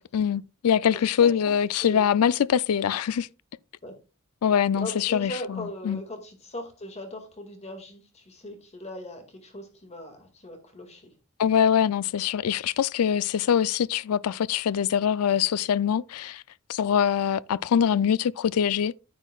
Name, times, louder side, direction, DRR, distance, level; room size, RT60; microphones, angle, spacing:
voice 1, 0.0-3.3 4.4-6.0 11.4-16.4 16.7-18.9, left 8 dB, 80° left, 0.4 m, -23 dB
voice 2, 0.9-2.1 3.8-4.0 4.7-11.1, left 1 dB, 30° left, 2.1 m, -39 dB
10.0 x 9.0 x 2.3 m
head